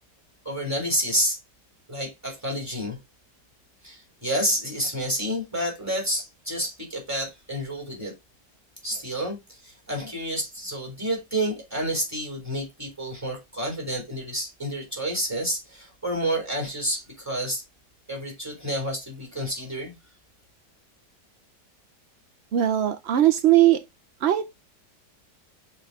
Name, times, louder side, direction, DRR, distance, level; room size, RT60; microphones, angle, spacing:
voice 1, 0.5-1.4 1.9-3.0 3.8-8.1 8.8-17.6 18.1-20.0, equal, 10° right, 3.5 m, -29 dB
voice 2, 22.5-23.8 24.2-24.5, right 12 dB, 75° right, 0.6 m, -19 dB
6.7 x 3.7 x 4.7 m
omnidirectional pair, 1.9 m